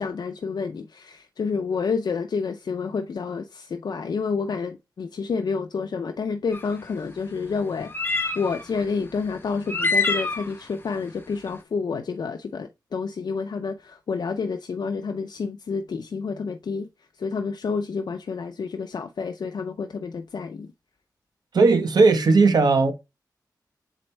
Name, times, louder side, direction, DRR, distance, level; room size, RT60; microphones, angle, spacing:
voice 1, 0.0-16.9 17.2-20.7, left 5 dB, 70° left, 0.6 m, -29 dB
sound 1, 6.5-6.6 7.9-8.6 9.7-10.5, left 3 dB, 30° left, 1.0 m, -25 dB
voice 2, 21.5-22.9, right 3 dB, 65° right, 1.0 m, -17 dB
7.3 x 4.3 x 3.2 m
wide cardioid pair, 120°, 7 cm